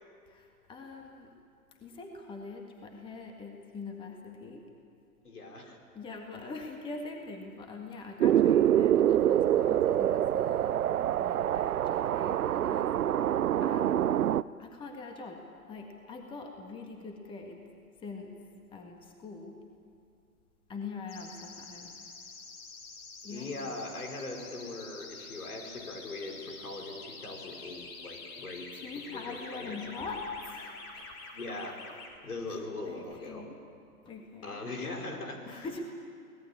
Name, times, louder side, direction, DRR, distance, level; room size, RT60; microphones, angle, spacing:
voice 1, 0.3-1.4 1.8-4.6 5.9-12.9 13.6-14.1 14.6-17.6 18.0-18.3 18.7-19.7 20.7-21.9 23.2-23.5 28.7-31.1 32.9-33.6 34.1-34.6 35.5-35.8, left 4 dB, 10° left, 3 dB, 1.8 m, -43 dB
voice 2, 5.2-5.8 23.3-28.7 29.1-29.8 31.3-31.8 32.2-33.5 34.4-35.9, left 2 dB, 80° left, 2 dB, 5.1 m, -40 dB
sound 1, 8.2-14.4, right 11 dB, 75° right, 0.6 m, -25 dB
sound 2, 21.1-32.1, left 4 dB, 40° left, 4.5 m, -47 dB
24.0 x 18.5 x 8.8 m, 2.5 s
hypercardioid pair, 135°, 44 cm